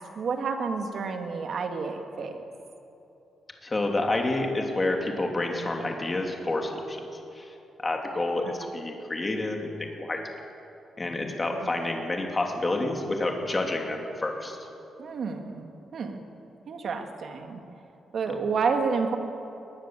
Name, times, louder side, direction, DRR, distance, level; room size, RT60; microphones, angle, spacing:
voice 1, 0.2-2.4 8.4-8.7 11.5-11.8 15.0-16.2 16.7-17.6 18.1-19.2, right 5 dB, 60° right, 5 dB, 2.3 m, -30 dB
voice 2, 3.6-7.5 7.8-10.2 11.0-14.6, left 2 dB, 20° left, 2 dB, 3.0 m, -29 dB
22.0 x 20.0 x 7.7 m, 2.9 s
wide cardioid pair, 135°, 0 cm